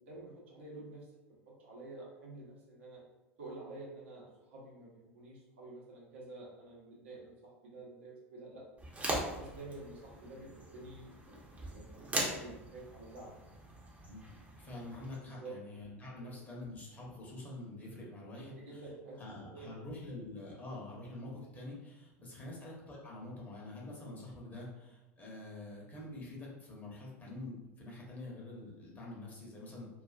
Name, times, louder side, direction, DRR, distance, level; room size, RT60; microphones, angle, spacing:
voice 1, 0.1-1.0 1.5-3.0 3.4-8.6 9.3-13.3 15.2-15.5 16.1-16.3 18.4-19.9 22.3-22.5, right 2 dB, 70° right, -5 dB, 0.8 m, -49 dB
sound 1, 8.8-15.2, right 1 dB, 20° right, 0.7 m, -41 dB
voice 2, 14.6-18.8 19.1-29.9, left 2 dB, 25° left, -4 dB, 0.8 m, -46 dB
2.4 x 2.4 x 2.4 m, 1.0 s
figure-of-eight pair, 80°, 7 cm